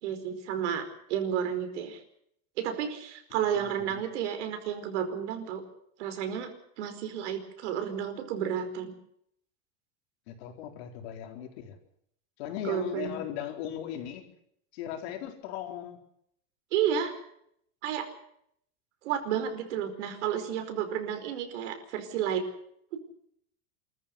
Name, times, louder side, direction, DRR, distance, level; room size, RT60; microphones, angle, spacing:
voice 1, 0.0-2.0 2.6-5.6 6.0-6.5 6.8-8.9 12.6-13.2 16.7-17.1 17.8-18.1 19.0-22.4, right 9 dB, 85° right, 7 dB, 4.9 m, -31 dB
voice 2, 3.3-4.0 10.3-11.8 12.4-14.2 14.7-16.0, left 10 dB, 65° left, 4 dB, 4.2 m, -38 dB
26.0 x 14.0 x 8.1 m, 0.71 s
supercardioid pair, 175°, 34 cm